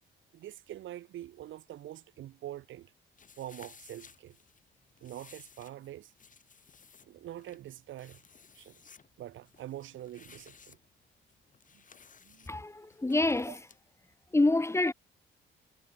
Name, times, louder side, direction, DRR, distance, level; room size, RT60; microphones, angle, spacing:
voice 1, 0.3-2.9 3.4-4.4 5.0-6.1 7.0-8.2 8.5-8.8 9.2-10.8 11.7-11.8 12.2-12.5 13.5-13.6, right 13 dB, 80° right, 2.3 m, -45 dB
sound 1, 3.2-13.8, left 6 dB, 40° left, 6.1 m, -58 dB
voice 2, 12.5-13.6 14.3-14.9, left 2 dB, 15° left, 1.0 m, -27 dB
cardioid pair, 90°, 20 cm